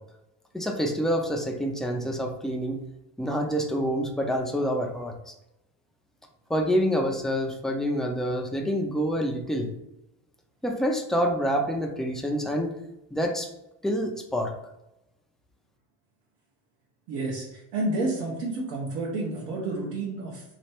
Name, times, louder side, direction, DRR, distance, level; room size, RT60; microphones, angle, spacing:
voice 1, 0.5-2.8 3.2-5.3 6.5-9.7 10.6-12.7 13.1-13.5 13.8-14.5, equal, ahead, 1 dB, 0.4 m, -27 dB
voice 2, 17.1-20.4, right 2 dB, 75° right, -5 dB, 1.3 m, -30 dB
3.2 x 3.2 x 4.4 m, 0.89 s
cardioid pair, 135°, 40 cm